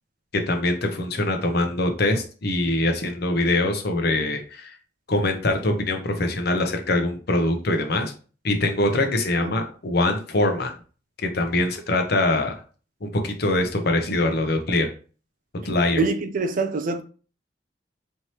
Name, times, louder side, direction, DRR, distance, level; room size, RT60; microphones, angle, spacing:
voice 1, 0.3-4.8 5.1-8.1 8.4-10.7 11.2-12.6 13.0-14.9 15.6-16.0, left 2 dB, 60° left, 0.8 m, -23 dB
voice 2, 16.0-17.0, right 3 dB, 45° right, 0.4 m, -24 dB
4.5 x 3.1 x 2.9 m
head